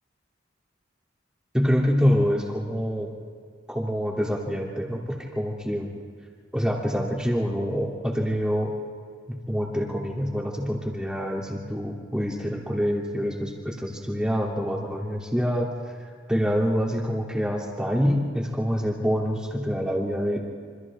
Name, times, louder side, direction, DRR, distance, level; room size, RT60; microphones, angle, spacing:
voice 1, 1.5-3.1 3.7-5.9 6.5-8.7 9.3-15.7 16.3-20.4, equal, 5° right, -2 dB, 3.1 m, -26 dB
27.5 x 26.0 x 3.7 m, 2.1 s
head